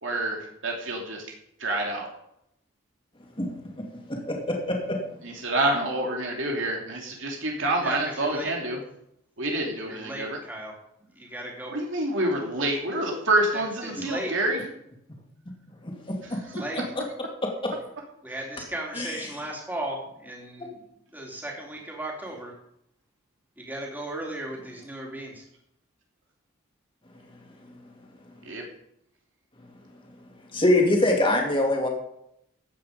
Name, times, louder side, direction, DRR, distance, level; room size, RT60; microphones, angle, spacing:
voice 1, 0.0-1.2 1.6-2.1 5.2-8.8 9.4-10.4 11.7-14.6 16.2-16.5 28.4-28.6, right 1 dB, 65° right, 0 dB, 2.8 m, -27 dB
voice 2, 4.3-5.0 15.8-16.2 17.6-17.7 19.0-19.2 30.5-31.9, left 1 dB, 25° left, 0 dB, 2.9 m, -23 dB
voice 3, 7.8-8.5 9.9-10.7 11.2-11.8 13.5-14.3 16.5-16.8 18.2-20.8 21.1-22.5 23.6-25.4, right 1 dB, 10° right, -2 dB, 3.4 m, -36 dB
15.0 x 9.3 x 5.2 m, 0.76 s
head